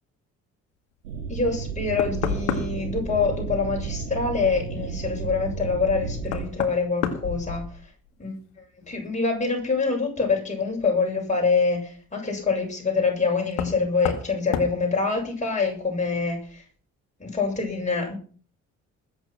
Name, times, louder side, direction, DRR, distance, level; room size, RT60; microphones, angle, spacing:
sound 1, 1.0-6.5, right 5 dB, 75° right, 2.2 m, -32 dB
voice 1, 1.3-7.6 8.2-8.3 8.9-16.6 17.2-18.1, left 4 dB, 20° left, -1 dB, 7.3 m, -25 dB
Knock, 1.6-1.7 2.0-3.0 5.4-5.5 6.3-8.1 8.4-9.0 10.7-10.8 13.5-13.8 14.1-14.3 14.5-14.8, left 8 dB, 70° left, 2.0 m, -30 dB
20.5 x 8.7 x 6.0 m, 0.43 s
figure-of-eight pair, 45°, 39 cm